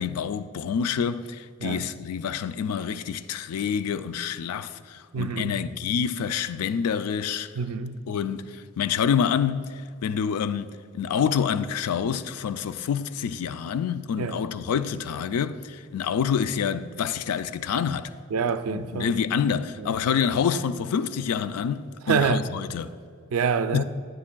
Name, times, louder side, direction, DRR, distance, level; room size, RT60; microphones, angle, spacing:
voice 1, 0.0-7.5 8.1-18.1 18.7-22.9 23.7-23.8, left 7 dB, 90° left, 0.3 m, -27 dB
voice 2, 5.1-5.6 7.5-8.0 14.2-14.4 18.3-19.1 19.5-19.9 22.0-22.4 23.3-23.8, right 6 dB, 70° right, 0.4 m, -27 dB
9.7 x 9.3 x 2.2 m
head